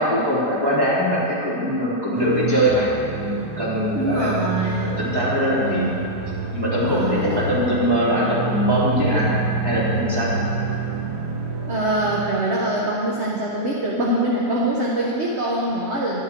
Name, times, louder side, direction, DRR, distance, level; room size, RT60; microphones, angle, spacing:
voice 1, 0.0-2.9 3.2-4.4 4.8-5.8 6.5-9.3 9.6-10.3, equal, 10° right, -8 dB, 2.9 m, -22 dB
sound 1, 2.1-12.9, right 3 dB, 65° right, 1.5 m, -28 dB
voice 2, 3.9-5.0 5.5-6.1 6.7-7.4 11.7-16.2, right 1 dB, 40° right, -5 dB, 1.3 m, -24 dB
12.5 x 10.0 x 4.6 m, 2.7 s
omnidirectional pair, 2.0 m